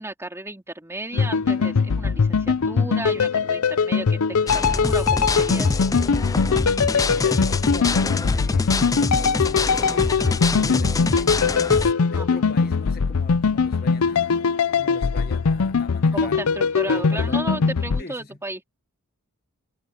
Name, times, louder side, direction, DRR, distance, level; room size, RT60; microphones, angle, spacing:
voice 1, 0.0-5.9 12.1-12.5 16.1-18.6, right 2 dB, 10° right, 3.2 m, -34 dB
sound 1, 1.1-18.0, left 5 dB, 85° left, 0.6 m, -21 dB
sound 2, 4.5-11.9, left 3 dB, 15° left, 0.3 m, -25 dB
voice 2, 6.9-8.7 9.2-11.5 12.0-14.4 14.7-16.4 16.9-17.4 18.0-18.3, left 3 dB, 45° left, 1.6 m, -39 dB
head